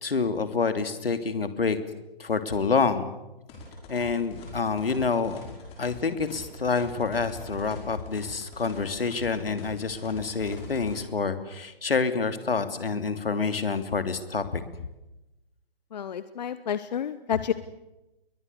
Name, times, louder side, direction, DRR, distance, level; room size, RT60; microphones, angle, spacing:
voice 1, 0.0-1.8 2.2-3.1 3.9-5.4 5.8-14.6, left 4 dB, 70° left, 10 dB, 2.9 m, -27 dB
sound 1, 3.5-11.0, left 2 dB, 20° left, 6.0 m, -43 dB
voice 2, 15.9-17.5, left 8 dB, 45° left, 14 dB, 1.0 m, -30 dB
29.0 x 22.5 x 6.8 m, 0.97 s
figure-of-eight pair, 140°, 30 cm